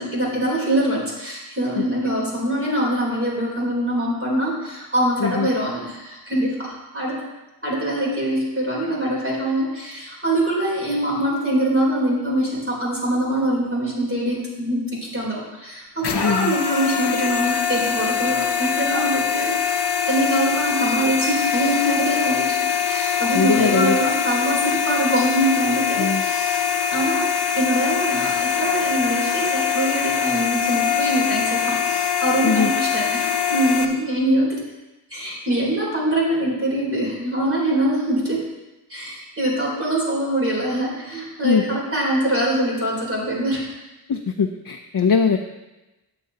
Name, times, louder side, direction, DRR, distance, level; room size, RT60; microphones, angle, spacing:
voice 1, 0.0-7.2 7.6-19.8 20.1-22.5 22.9-26.6 26.9-34.6 35.1-38.5 38.9-43.7, right 1 dB, 35° right, -5 dB, 3.5 m, -23 dB
sound 1, 16.0-33.9, left 7 dB, 85° left, 0.9 m, -23 dB
voice 2, 16.2-16.5 23.3-24.0 26.0-26.2 32.4-32.7 41.4-41.8 44.1-45.4, left 5 dB, 60° left, 3 dB, 0.6 m, -21 dB
12.5 x 7.9 x 2.8 m, 1.0 s
wide cardioid pair, 60°, 39 cm